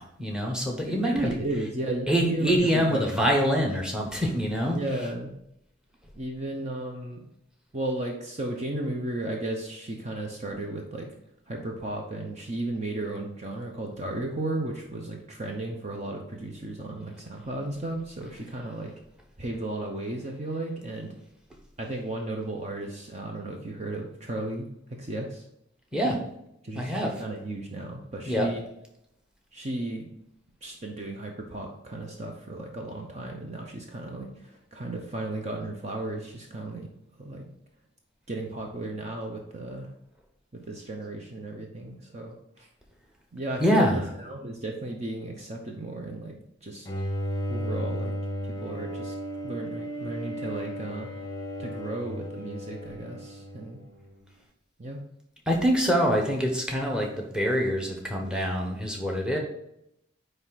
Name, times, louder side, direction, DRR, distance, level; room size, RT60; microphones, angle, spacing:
voice 1, 0.0-1.3 2.1-4.8 25.9-26.2 26.7-27.1 28.3-28.5 43.6-44.0 55.5-59.4, equal, 5° right, 1 dB, 1.1 m, -25 dB
voice 2, 0.9-3.3 4.7-5.3 6.1-7.2 7.7-11.1 11.5-18.9 19.4-21.1 21.8-24.7 25.0-25.4 26.6-28.6 29.5-30.1 30.6-36.9 37.2-37.5 38.3-39.9 40.5-42.7 43.3-43.9 44.2-46.9 47.5-48.1 48.4-49.1 49.4-51.1 51.6-53.8 54.8-55.0, right 2 dB, 35° right, 1 dB, 0.7 m, -34 dB
Bowed string instrument, 46.9-54.1, equal, 20° left, 0.8 m, -34 dB
9.3 x 3.3 x 4.1 m, 0.79 s
head